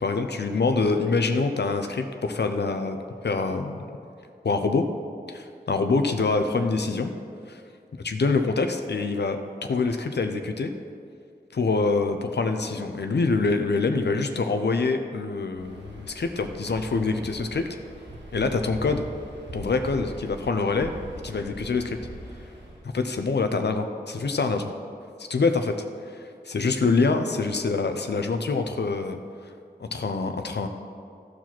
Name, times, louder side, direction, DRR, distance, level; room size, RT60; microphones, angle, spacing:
voice 1, 0.0-3.0 3.2-3.8 4.4-4.8 5.7-7.1 8.0-10.7 11.5-17.6 18.3-19.0 19.5-20.9 21.2-22.0 22.9-24.7 25.2-25.7 26.1-29.2 29.8-30.7, left 4 dB, 80° left, 6 dB, 0.6 m, -25 dB
Waves surf, 15.5-22.9, right 1 dB, 90° right, 1.4 m, -42 dB
13.5 x 4.8 x 5.9 m, 2.4 s
cardioid pair, 40°, 17 cm